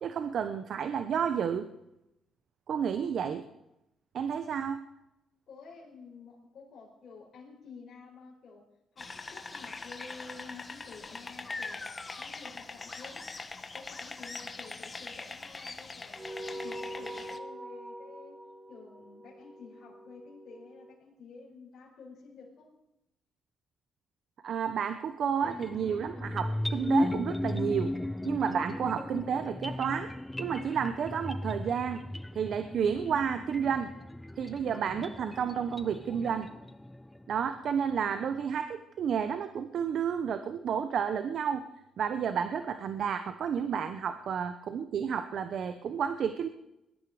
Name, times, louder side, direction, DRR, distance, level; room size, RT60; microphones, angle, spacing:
voice 1, 0.0-1.7 2.7-3.4 4.1-4.8 24.4-27.9 28.2-30.1 30.4-32.0 32.3-33.9 34.4-36.5 37.3-41.6 42.0-46.5, right 7 dB, 65° right, 9 dB, 1.0 m, -31 dB
voice 2, 5.5-8.6 8.9-11.8 12.2-13.3 13.7-18.4 18.7-22.7, left 4 dB, 60° left, -5 dB, 4.7 m, -50 dB
sound 1, 9.0-17.4, left 3 dB, 30° left, 1.3 m, -42 dB
sound 2, 16.2-21.0, right 1 dB, 25° right, 2.6 m, -44 dB
sound 3, 25.4-37.6, left 1 dB, 5° left, 0.5 m, -36 dB
19.5 x 12.5 x 5.0 m, 0.88 s
cardioid pair, 90°, 0 cm